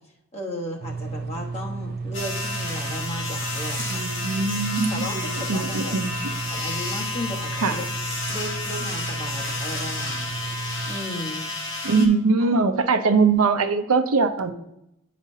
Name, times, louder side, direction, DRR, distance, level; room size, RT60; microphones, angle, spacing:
voice 1, 0.3-4.1 4.9-6.0 6.5-7.8 8.3-10.3 10.9-11.6 12.4-12.6, left 1 dB, 30° left, -1 dB, 1.2 m, -35 dB
sound 1, 0.8-11.0, right 4 dB, 50° right, 0.4 m, -33 dB
sound 2, 2.1-12.1, left 3 dB, 60° left, 1.6 m, -31 dB
voice 2, 3.9-6.3 7.6-7.8 11.8-14.5, right 4 dB, 90° right, 7 dB, 0.7 m, -22 dB
9.8 x 5.1 x 2.7 m, 0.83 s
head